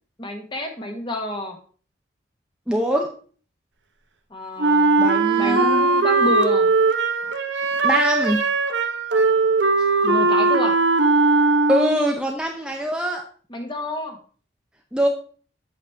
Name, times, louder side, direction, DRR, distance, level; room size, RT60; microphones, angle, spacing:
voice 1, 0.2-1.6 4.3-5.1 5.3-6.7 10.0-10.8 13.5-14.2, left 1 dB, 25° left, 4 dB, 1.1 m, -29 dB
voice 2, 2.7-3.1 5.0-5.9 7.8-8.4 11.7-13.2 14.9-15.1, equal, 5° right, 1 dB, 0.6 m, -23 dB
Wind instrument woodwind instrument, 4.6-12.2, right 3 dB, 75° right, 0.8 m, -19 dB
8.3 x 6.0 x 3.4 m, 0.43 s
head